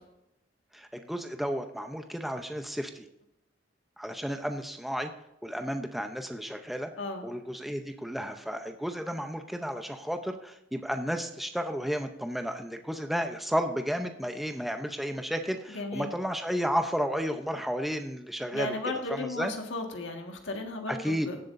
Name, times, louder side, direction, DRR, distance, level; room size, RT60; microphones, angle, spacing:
voice 1, 0.7-3.1 4.0-5.1 5.4-6.9 7.2-19.5 20.9-21.3, equal, ahead, 5 dB, 0.6 m, -32 dB
voice 2, 15.7-16.1 18.5-21.4, left 2 dB, 75° left, 3 dB, 1.7 m, -35 dB
17.0 x 7.8 x 2.6 m, 0.85 s
head